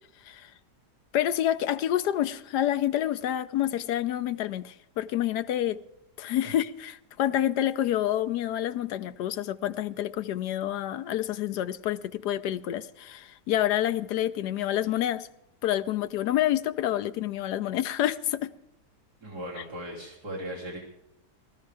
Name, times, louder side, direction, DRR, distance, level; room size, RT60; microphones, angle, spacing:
voice 1, 1.1-5.8 6.2-15.3 15.6-18.5, left 12 dB, 75° left, 1.2 m, -28 dB
voice 2, 19.2-20.8, equal, 70° right, 3.8 m, -37 dB
19.0 x 13.5 x 3.4 m
omnidirectional pair, 1.8 m